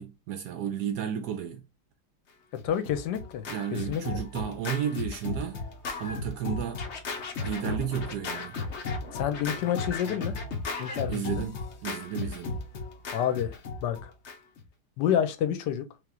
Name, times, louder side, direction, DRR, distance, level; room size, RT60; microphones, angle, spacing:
voice 1, 0.0-1.6 3.5-5.6 6.0-6.8 7.4-8.6 11.1-12.6, right 9 dB, 80° right, 0.9 m, -33 dB
Scratching (performance technique), 2.6-14.6, left 3 dB, 90° left, 0.6 m, -35 dB
voice 2, 2.6-3.4 3.9-4.0 9.1-10.4 10.8-11.4 13.1-14.1 15.0-15.9, left 9 dB, 70° left, 1.1 m, -28 dB
3.5 x 2.9 x 3.6 m
omnidirectional pair, 2.2 m